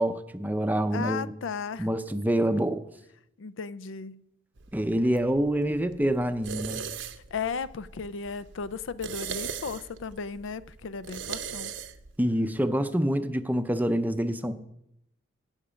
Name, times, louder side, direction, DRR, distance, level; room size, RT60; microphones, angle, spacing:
voice 1, 0.0-1.3 1.8-2.9 4.7-6.8 12.2-14.5, right 1 dB, 10° right, 0.5 m, -26 dB
voice 2, 0.9-1.9 3.4-4.2 7.3-11.7, left 5 dB, 75° left, 0.5 m, -35 dB
sound 1, 4.6-12.2, right 7 dB, 65° right, 0.8 m, -40 dB
17.0 x 6.6 x 5.1 m
head